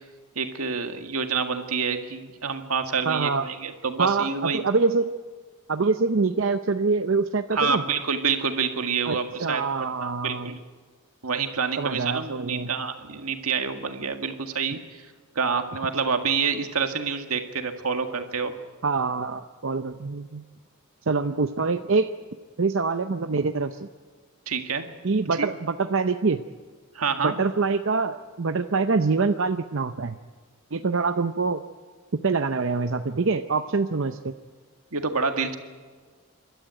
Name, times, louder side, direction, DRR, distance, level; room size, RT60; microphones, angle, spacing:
voice 1, 0.4-4.6 7.5-9.6 10.0-10.6 11.2-15.1 15.4-18.5 24.5-24.8 25.3-25.5 26.9-27.4 34.9-35.6, right 5 dB, 80° right, 6 dB, 1.9 m, -27 dB
voice 2, 3.1-3.5 4.0-5.1 5.7-7.8 9.1-10.5 11.8-12.7 18.8-20.4 21.1-22.1 22.6-23.9 25.0-26.4 27.2-30.2 30.7-31.6 32.2-34.3, right 4 dB, 60° right, 8 dB, 0.6 m, -25 dB
28.5 x 12.5 x 9.2 m, 1.5 s
head